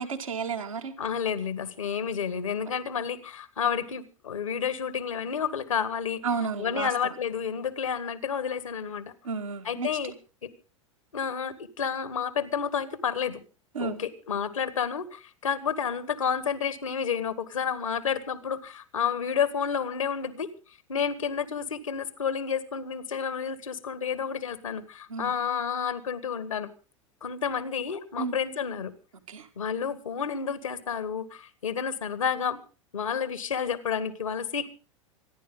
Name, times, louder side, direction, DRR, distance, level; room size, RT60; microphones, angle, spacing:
voice 1, 0.0-0.9 6.2-6.9 9.2-10.1 13.7-14.0 25.1-25.4 28.2-28.4 29.3-29.5, right 5 dB, 80° right, 4 dB, 2.2 m, -32 dB
voice 2, 1.0-6.2 6.6-9.1 9.6-10.1 10.4-10.5 11.1-13.4 13.8-20.5 20.9-26.7 27.2-28.9 29.5-32.6 32.9-34.7, left 7 dB, 80° left, 14 dB, 1.8 m, -30 dB
26.0 x 10.5 x 3.9 m, 0.36 s
hypercardioid pair, 90°, 17 cm